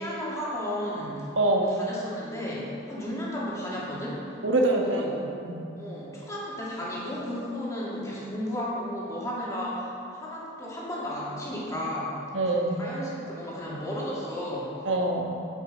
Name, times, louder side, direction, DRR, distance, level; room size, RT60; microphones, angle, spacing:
voice 1, 0.0-5.1 5.8-12.2 12.8-14.8, equal, 15° left, -7 dB, 2.5 m, -34 dB
voice 2, 1.4-1.7 4.4-5.6 12.3-12.8 14.8-15.4, right 2 dB, 80° right, 0 dB, 1.4 m, -25 dB
9.7 x 9.2 x 5.3 m, 2.7 s
head